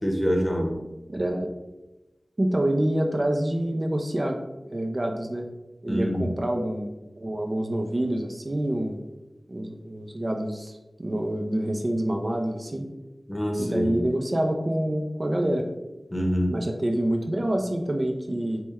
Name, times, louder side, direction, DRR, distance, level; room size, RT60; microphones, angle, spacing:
voice 1, 0.0-0.8 5.9-6.3 13.3-14.0 16.1-16.5, equal, 20° left, 1 dB, 0.8 m, -25 dB
voice 2, 1.1-1.5 2.4-4.4 4.7-5.5 5.8-9.0 9.5-12.9 13.6-15.7 16.5-18.6, right 1 dB, 40° right, 3 dB, 0.4 m, -27 dB
4.2 x 2.1 x 3.4 m, 1.0 s
cardioid pair, 40°, 0 cm